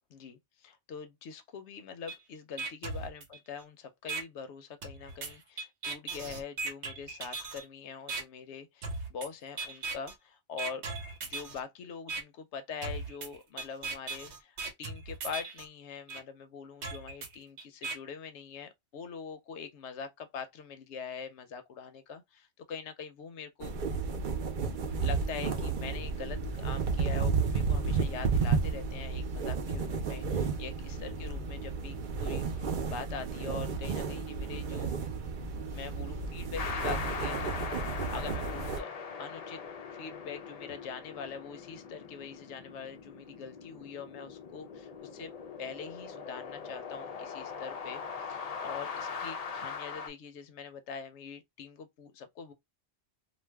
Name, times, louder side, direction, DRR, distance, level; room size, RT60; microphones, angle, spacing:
voice 1, 0.1-10.8 11.2-23.7 24.8-34.9 35.7-38.9 39.2-39.6 39.9-45.3 45.6-52.5, left 6 dB, 90° left, 0.9 m, -43 dB
sound 1, 2.1-2.2 2.6-3.6 4.1-4.2 4.8-7.6 8.1-8.2 8.8-9.3 9.6-10.1 10.6-11.6 12.1-12.2 12.8-15.6 16.1-16.2 16.8-17.9, right 3 dB, 85° right, 1.1 m, -38 dB
sound 2, 23.6-38.8, right 5 dB, 55° right, 0.6 m, -32 dB
sound 3, 36.6-50.1, left 5 dB, 55° left, 0.4 m, -41 dB
2.4 x 2.2 x 3.3 m
omnidirectional pair, 1.1 m